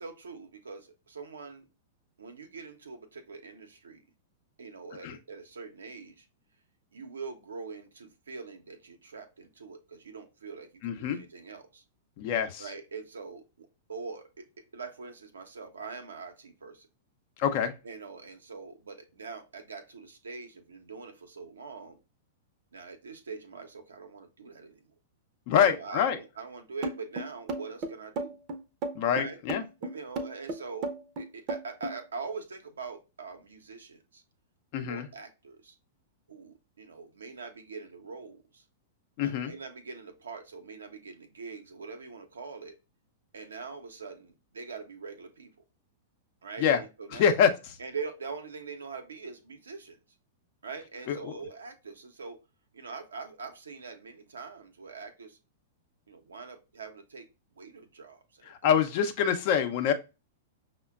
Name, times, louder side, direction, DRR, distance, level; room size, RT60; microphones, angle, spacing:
voice 1, 0.0-1.6 2.2-4.0 4.6-6.3 6.9-11.8 12.6-16.9 17.8-22.0 22.7-24.8 25.6-28.4 29.1-29.4 29.8-34.2 34.9-35.7 36.3-38.6 39.2-42.8 43.3-45.5 46.4-47.4 47.8-50.0 50.6-52.4 52.7-55.4 56.1-57.3 57.5-58.7, right 4 dB, 80° right, 0.6 m, -43 dB
voice 2, 10.8-11.2 12.2-12.7 17.4-17.7 25.5-26.2 28.9-29.6 34.7-35.1 39.2-39.5 46.6-46.8 47.1-47.5 51.1-51.3 58.5-59.9, left 8 dB, 50° left, 0.6 m, -25 dB
sound 1, 26.8-32.0, right 2 dB, 40° right, 0.6 m, -34 dB
5.5 x 2.1 x 2.3 m
hypercardioid pair, 105°, 0 cm